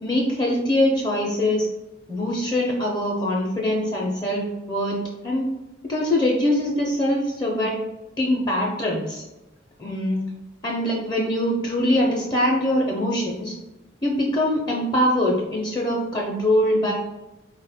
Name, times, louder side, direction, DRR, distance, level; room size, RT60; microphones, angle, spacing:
voice 1, 0.0-1.7 2.1-5.0 5.2-5.5 5.9-7.8 8.2-9.2 9.8-10.2 10.6-13.5 14.0-16.9, left 1 dB, 20° left, -1 dB, 0.5 m, -23 dB
4.0 x 2.1 x 4.1 m, 0.99 s
head